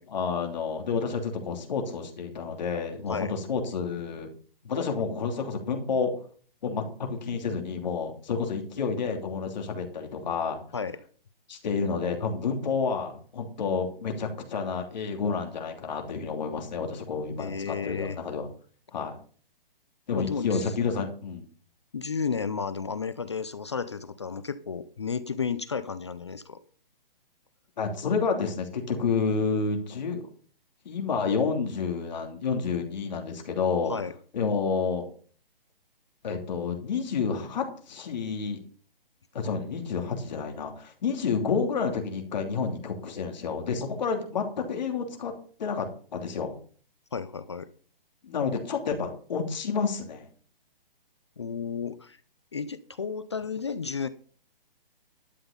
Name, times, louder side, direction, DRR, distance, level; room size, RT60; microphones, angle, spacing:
voice 1, 0.1-4.3 4.6-6.1 6.6-10.6 11.5-18.5 18.9-19.2 20.1-21.4 27.8-30.2 30.8-33.9 34.3-35.0 36.2-38.6 39.3-45.3 45.6-45.9 46.1-46.6 48.2-50.2, left 5 dB, 50° left, 3 dB, 3.0 m, -29 dB
voice 2, 17.4-18.2 20.2-20.7 21.9-26.6 33.9-34.1 47.1-47.7 51.4-52.2 52.5-54.1, left 5 dB, 30° left, 14 dB, 0.5 m, -32 dB
12.0 x 7.8 x 5.3 m, 0.43 s
hypercardioid pair, 170°, 29 cm